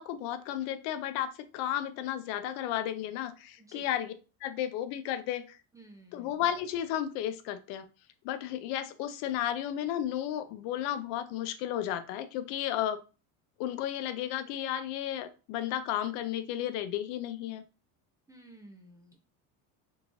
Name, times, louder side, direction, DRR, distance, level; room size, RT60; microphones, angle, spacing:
voice 1, 0.0-4.1 4.4-5.6 6.1-7.9 8.2-13.0 13.6-17.6, left 11 dB, 80° left, 11 dB, 0.6 m, -33 dB
voice 2, 3.6-3.9 5.7-6.3 18.3-19.2, right 1 dB, 10° right, 2 dB, 0.3 m, -53 dB
3.6 x 3.1 x 2.5 m, 0.33 s
cardioid pair, 135°, 40 cm